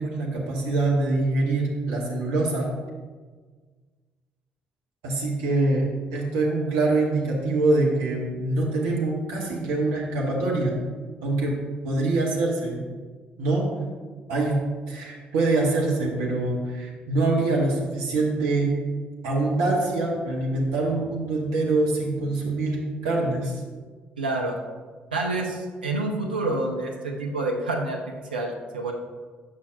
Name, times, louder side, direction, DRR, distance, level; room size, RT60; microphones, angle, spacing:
voice 1, 0.0-2.7 5.0-10.8 11.2-11.6 11.8-12.8 13.4-13.7 14.3-14.6 14.9-18.8 19.2-23.6, right 2 dB, 65° right, -2 dB, 1.0 m, -24 dB
voice 2, 24.2-24.6 25.1-28.0 28.3-28.9, right 2 dB, 85° right, 1 dB, 0.5 m, -28 dB
7.5 x 5.6 x 2.6 m, 1.5 s
figure-of-eight pair, 45°, 5 cm